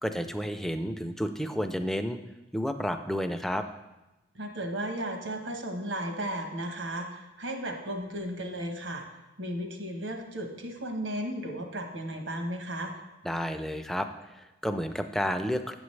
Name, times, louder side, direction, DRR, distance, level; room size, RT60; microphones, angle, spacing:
voice 1, 0.0-2.2 2.5-3.6 13.2-14.1 14.4-15.7, equal, ahead, 7 dB, 0.3 m, -31 dB
voice 2, 4.3-9.0 9.4-13.0, right 1 dB, 90° right, 4 dB, 1.1 m, -35 dB
8.7 x 7.0 x 3.2 m, 1.0 s
head